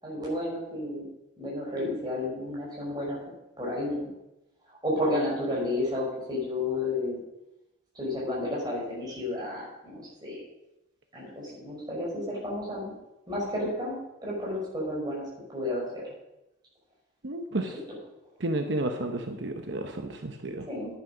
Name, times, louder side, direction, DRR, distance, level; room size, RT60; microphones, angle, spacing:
voice 1, 0.0-1.0 1.4-3.2 3.6-4.1 4.8-7.2 7.9-10.4 11.1-12.9 13.3-16.0 17.5-18.0 20.7-20.9, left 1 dB, 20° right, -5 dB, 5.2 m, -32 dB
voice 2, 17.2-17.7 18.4-20.7, right 2 dB, 65° right, 5 dB, 0.8 m, -31 dB
10.5 x 9.7 x 5.2 m, 0.92 s
head